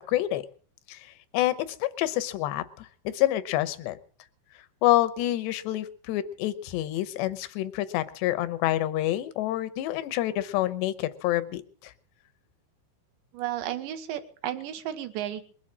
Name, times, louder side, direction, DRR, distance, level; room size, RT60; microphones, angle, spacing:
voice 1, 0.1-0.4 0.9-4.0 4.8-11.9, left 14 dB, 75° left, 14 dB, 2.7 m, -27 dB
voice 2, 13.3-15.4, right 12 dB, 70° right, 9 dB, 3.3 m, -33 dB
21.5 x 8.8 x 7.3 m, 0.44 s
omnidirectional pair, 5.6 m